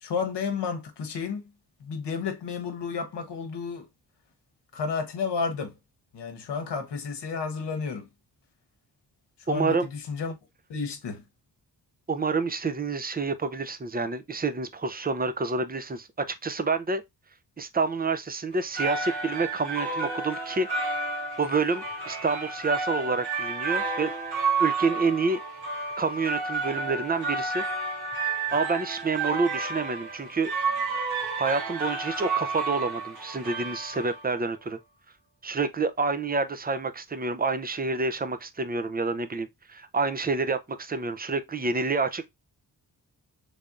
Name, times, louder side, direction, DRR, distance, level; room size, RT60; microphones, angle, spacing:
voice 1, 0.0-1.4 1.8-3.9 4.7-5.8 6.1-8.1 9.4-10.4 10.7-11.2, left 5 dB, 80° left, 0.9 m, -31 dB
voice 2, 9.5-9.9 12.1-17.0 17.6-20.7 21.4-24.1 24.6-25.4 26.0-27.6 28.5-30.5 31.4-34.8 35.4-42.3, right 4 dB, 25° right, 0.5 m, -28 dB
sound 1, 18.5-34.4, right 4 dB, 65° right, 1.2 m, -31 dB
3.4 x 3.4 x 2.5 m
cardioid pair, 60°, 41 cm